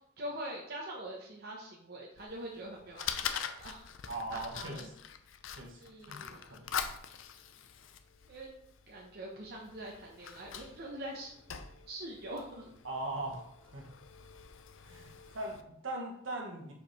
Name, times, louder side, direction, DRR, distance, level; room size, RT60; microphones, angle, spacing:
voice 1, 0.2-3.1 3.4-3.8 4.3-4.9 5.8-6.6 8.3-8.5 8.9-11.3 11.9-12.7, right 1 dB, 50° right, -2 dB, 0.9 m, -43 dB
Fire, 2.2-15.6, left 8 dB, 80° left, 0.5 m, -44 dB
voice 2, 4.1-4.9 5.6-5.8 6.1-6.8 12.8-13.9 14.8-16.7, right 2 dB, 75° right, 0 dB, 1.4 m, -40 dB
5.1 x 4.8 x 4.1 m, 0.73 s
head